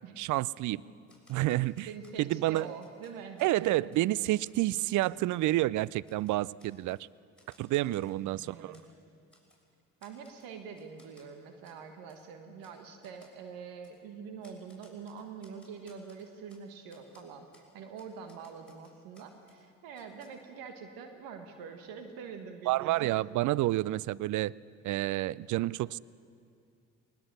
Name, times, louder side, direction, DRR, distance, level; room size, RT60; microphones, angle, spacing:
voice 1, 0.2-0.8 1.3-1.9 2.2-2.7 3.4-7.0 7.6-8.7 22.7-24.5 24.8-26.0, right 16 dB, 60° right, 23 dB, 0.5 m, -29 dB
Typewriter, 1.1-3.5 3.9-4.1 4.4-5.3 5.7-7.0 7.4-8.9 9.3-9.6 10.0-10.5 10.8-11.3 11.6-11.8 12.1-12.2 12.6-12.8 13.0-13.4 13.8-14.0 14.4-16.6 16.9-17.2 17.5-17.7 18.0-19.6 19.9-20.3, left 1 dB, 5° left, 7.1 m, -63 dB
voice 2, 1.9-3.9 8.2-8.8 10.0-23.2, right 6 dB, 75° right, 6 dB, 1.6 m, -45 dB
20.0 x 20.0 x 6.9 m, 2.4 s
hypercardioid pair, 50°, 35 cm